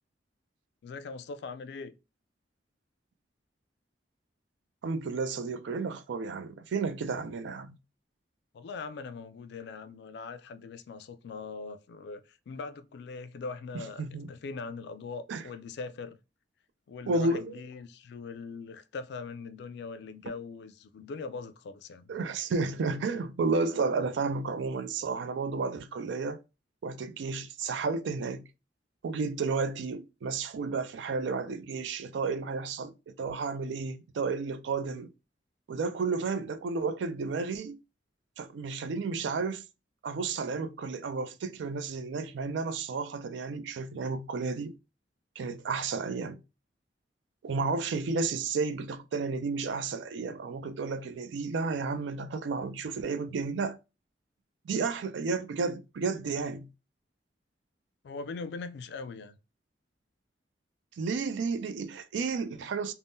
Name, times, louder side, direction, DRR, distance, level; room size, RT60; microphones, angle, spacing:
voice 1, 0.8-1.9 8.5-14.0 14.3-16.2 16.9-22.1 58.0-59.4, left 4 dB, 65° left, 0.3 m, -41 dB
voice 2, 4.8-7.8 14.0-14.3 15.3-15.4 17.1-17.4 22.1-26.4 26.8-28.5 29.0-35.1 35.7-37.8 38.4-39.7 40.0-44.8 45.4-46.4 47.4-53.8 54.6-56.7 61.0-62.9, right 4 dB, 80° right, 0.4 m, -32 dB
2.6 x 2.1 x 3.5 m
head